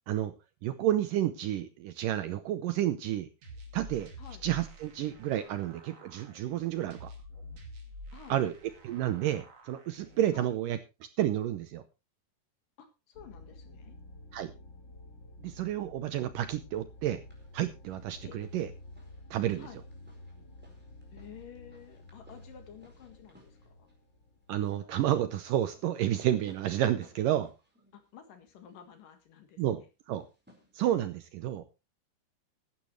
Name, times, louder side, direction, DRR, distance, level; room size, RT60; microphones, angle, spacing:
voice 1, 0.6-3.3 3.7-4.1 4.4-7.1 8.3-8.5 8.8-10.8 11.2-11.8 14.3-14.5 15.4-17.2 17.5-18.7 19.3-19.7 24.5-27.5 29.6-29.8 30.1-30.3 30.8-31.6, right 12 dB, 75° right, 10 dB, 2.1 m, -30 dB
sound 1, 3.4-10.4, equal, 45° right, 3.3 m, -49 dB
voice 2, 12.8-14.0 18.2-18.4 19.6-19.8 21.1-23.9 27.9-29.6, left 8 dB, 65° left, 7 dB, 3.2 m, -51 dB
sound 2, 13.1-25.1, left 1 dB, 40° left, 1.7 m, -51 dB
sound 3, 17.0-17.5 17.8-28.8 30.1-31.3, equal, 5° right, 4.1 m, -60 dB
15.5 x 12.0 x 3.2 m, 0.28 s
omnidirectional pair, 4.5 m